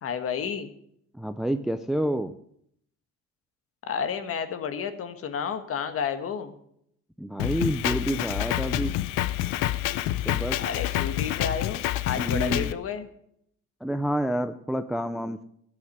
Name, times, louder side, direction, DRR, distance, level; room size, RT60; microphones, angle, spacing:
voice 1, 0.0-0.7 3.9-6.5 10.6-13.1, left 7 dB, 45° left, 9 dB, 1.5 m, -31 dB
voice 2, 1.1-2.3 7.2-9.0 10.2-10.6 12.1-12.7 13.8-15.4, right 1 dB, ahead, 10 dB, 0.4 m, -28 dB
Drum kit, 7.4-12.7, left 14 dB, 90° left, 0.7 m, -28 dB
13.0 x 8.7 x 6.5 m, 0.70 s
cardioid pair, 140°, 31 cm